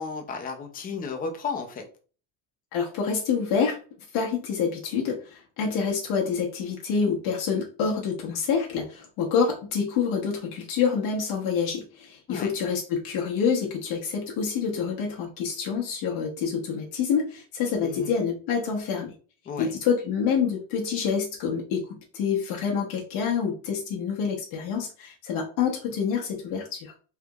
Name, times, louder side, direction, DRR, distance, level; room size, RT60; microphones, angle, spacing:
voice 1, 0.0-1.8 12.3-12.5 17.8-18.1 19.5-19.7, left 5 dB, 20° left, 3 dB, 0.3 m, -33 dB
voice 2, 2.7-3.8 4.1-19.1 19.6-26.9, left 6 dB, 85° left, -2 dB, 1.1 m, -27 dB
3.4 x 2.9 x 2.3 m, 0.38 s
cardioid pair, 160°, 48 cm